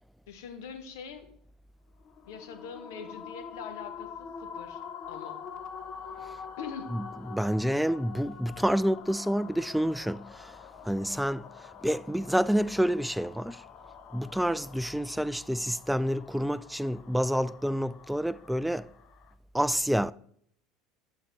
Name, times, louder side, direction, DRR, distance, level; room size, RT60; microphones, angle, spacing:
voice 1, 0.3-1.3 2.3-4.3 4.5-4.8 5.1-5.4 6.6-6.9, left 6 dB, 70° left, 1.2 m, -42 dB
sound 1, 2.0-19.3, left 7 dB, 45° left, 0.8 m, -46 dB
voice 2, 6.9-10.5 10.8-11.4 11.8-13.6 14.1-18.9 19.5-20.1, equal, ahead, 0.3 m, -28 dB
11.5 x 4.0 x 4.6 m
figure-of-eight pair, 70°, 2 cm